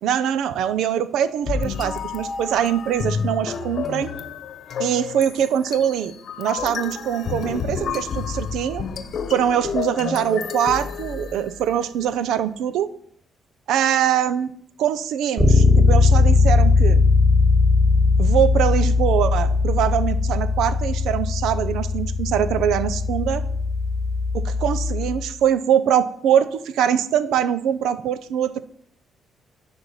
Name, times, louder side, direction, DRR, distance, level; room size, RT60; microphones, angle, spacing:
voice 1, 0.0-4.1 4.8-6.1 6.4-8.8 9.3-12.9 13.7-14.5 14.8-17.0 18.2-23.4 24.3-28.6, right 9 dB, 85° right, 14 dB, 0.7 m, -23 dB
sound 1, 1.5-11.8, left 6 dB, 60° left, 0.9 m, -30 dB
Bass guitar, 15.4-25.2, left 4 dB, 5° right, 2.0 m, -19 dB
10.5 x 4.3 x 7.2 m, 0.66 s
cardioid pair, 90°, 0 cm